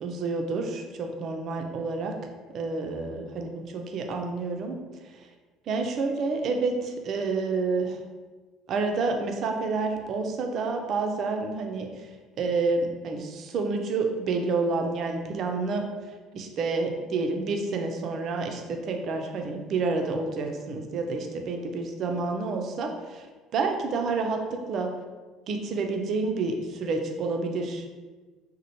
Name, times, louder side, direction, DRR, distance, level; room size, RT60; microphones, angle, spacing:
voice 1, 0.0-2.2 2.5-3.6 3.9-4.8 5.1-5.3 5.7-8.0 8.7-12.1 12.4-15.9 16.3-23.3 23.5-24.9 25.5-27.9, right 3 dB, 50° right, 4 dB, 0.4 m, -29 dB
2.9 x 2.0 x 2.8 m, 1.3 s
figure-of-eight pair, 60°, 0 cm